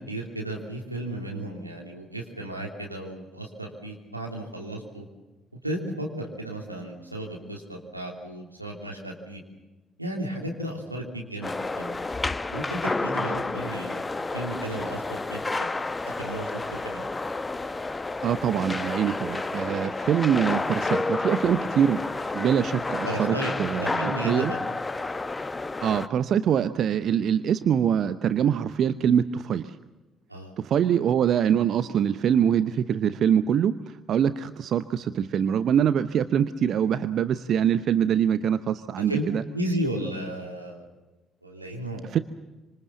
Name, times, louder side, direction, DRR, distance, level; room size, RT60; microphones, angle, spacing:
voice 1, 0.0-5.0 5.6-9.4 10.0-11.5 11.8-12.1 12.5-14.0 14.3-15.7 16.0-17.1 23.0-24.6 30.3-30.5 39.1-39.2 39.5-40.8 41.4-42.0, right 1 dB, 90° right, 0 dB, 3.2 m, -34 dB
sound 1, 11.4-26.1, left 3 dB, 20° left, 1.0 m, -30 dB
voice 2, 18.2-22.0 22.3-24.5 25.8-29.8 30.6-39.4 42.1-42.2, right 8 dB, 50° right, 13 dB, 0.8 m, -24 dB
26.5 x 26.0 x 7.2 m, 1.1 s
figure-of-eight pair, 45°, 0 cm